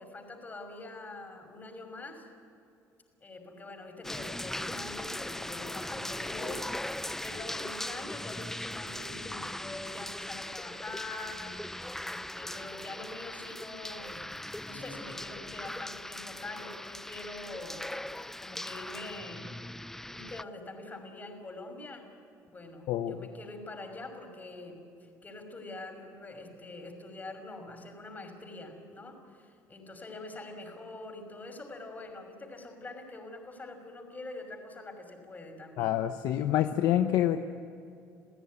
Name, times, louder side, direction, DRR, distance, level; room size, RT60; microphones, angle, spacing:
voice 1, 0.0-2.3 3.2-11.6 12.1-14.2 14.6-17.9 18.4-19.5 20.1-22.1 22.5-24.8 25.2-36.0, left 2 dB, 25° left, 5 dB, 5.9 m, -44 dB
sound 1, 4.0-20.4, left 1 dB, 5° left, 0.6 m, -39 dB
voice 2, 22.9-23.2 35.8-37.4, left 12 dB, 70° left, 7 dB, 1.1 m, -27 dB
29.5 x 16.0 x 9.8 m, 2.5 s
supercardioid pair, 95°, 7 cm